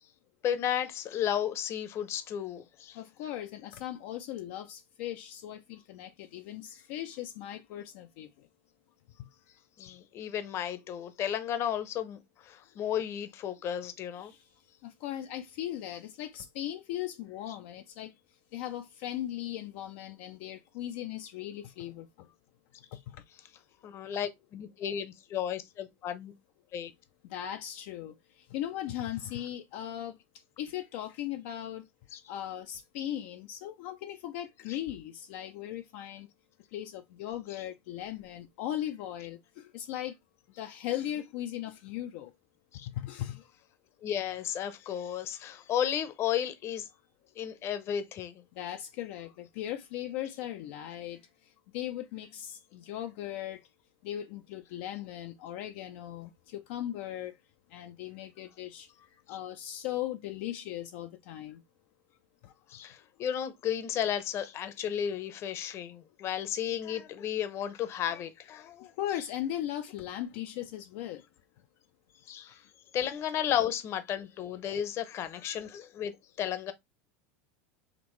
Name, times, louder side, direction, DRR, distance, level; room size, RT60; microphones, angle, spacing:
voice 1, 0.4-3.0 9.8-14.3 23.8-26.3 26.7-26.9 32.1-32.2 34.7-34.8 42.7-42.9 44.0-46.9 47.4-48.4 62.7-68.9 72.3-72.6 72.9-76.1 76.4-76.7, left 9 dB, 40° left, 0.8 m, -33 dB
voice 2, 2.9-8.5 14.1-14.4 14.8-18.1 18.5-22.3 23.1-23.2 27.3-30.2 30.6-31.9 32.3-36.3 36.7-40.1 40.6-42.3 42.9-43.5 48.5-51.2 51.7-53.6 54.0-57.3 57.7-58.9 59.3-61.6 62.4-62.5 69.0-71.2, left 12 dB, 65° left, 0.5 m, -38 dB
5.2 x 3.0 x 3.1 m
supercardioid pair, 120°, 7 cm